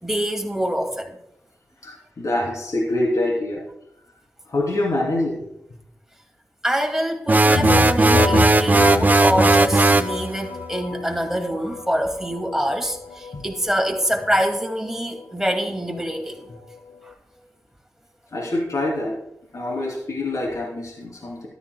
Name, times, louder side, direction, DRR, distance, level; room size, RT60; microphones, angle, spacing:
voice 1, 0.0-1.2 6.6-16.4 17.0-17.1, equal, 5° right, 3 dB, 2.3 m, -25 dB
voice 2, 1.8-3.6 4.5-5.4 7.5-7.6 13.3-13.4 18.3-19.2 19.5-21.5, left 1 dB, 65° left, -3 dB, 3.2 m, -25 dB
sound 1, 7.3-10.1, right 2 dB, 30° right, 0.5 m, -16 dB
sound 2, 7.5-17.1, left 4 dB, 85° left, 0.9 m, -29 dB
13.0 x 11.5 x 2.3 m, 0.84 s
cardioid pair, 45°, 6 cm